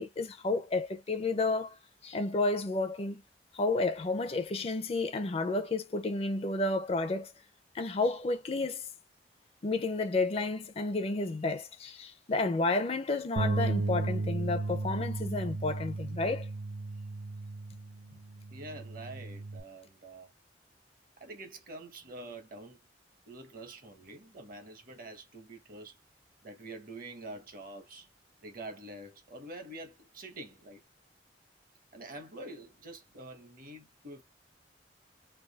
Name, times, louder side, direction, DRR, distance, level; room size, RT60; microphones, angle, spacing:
voice 1, 0.0-1.8 2.0-3.2 3.5-7.3 7.7-8.9 9.6-16.5, left 3 dB, 35° left, 0.5 m, -31 dB
Bass guitar, 13.4-19.6, right 3 dB, 90° right, 0.5 m, -34 dB
voice 2, 18.5-20.3 21.2-22.8 23.3-26.0 26.4-28.1 28.4-30.8 31.9-34.2, right 2 dB, 50° right, 1.0 m, -46 dB
3.4 x 2.3 x 2.3 m
head